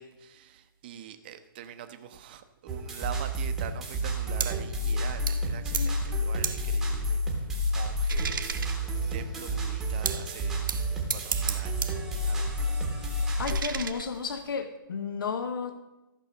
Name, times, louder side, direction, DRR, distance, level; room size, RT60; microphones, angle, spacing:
voice 1, 0.0-10.8 11.1-13.1, right 9 dB, 25° right, 9 dB, 0.7 m, -44 dB
sound 1, 2.7-13.6, equal, 5° right, 1.0 m, -30 dB
sound 2, 4.4-4.7 5.3-5.5 5.7-6.0 6.4-6.7 7.1-9.2 10.1-10.3 10.7-12.0 12.3-14.6, right 6 dB, 65° right, 1.0 m, -35 dB
voice 2, 5.8-6.2 13.4-15.8, left 5 dB, 70° left, 9 dB, 0.9 m, -33 dB
14.0 x 5.4 x 6.5 m, 1.0 s
hypercardioid pair, 170°, 12 cm